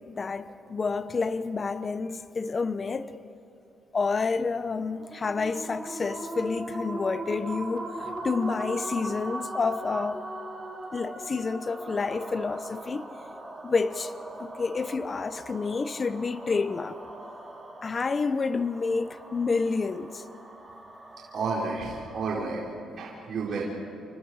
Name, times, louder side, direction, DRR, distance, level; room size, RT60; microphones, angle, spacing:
voice 1, 0.0-3.3 3.9-10.2 10.9-13.1 13.6-14.1 14.4-17.0 17.8-20.2, left 4 dB, 35° left, 0.9 m, -29 dB
sound 1, 5.0-22.3, right 2 dB, 15° right, 4.6 m, -40 dB
voice 2, 21.3-22.6 23.0-23.6, right 4 dB, 55° right, 4.7 m, -31 dB
28.5 x 28.5 x 4.9 m
cardioid pair, 90°, 0 cm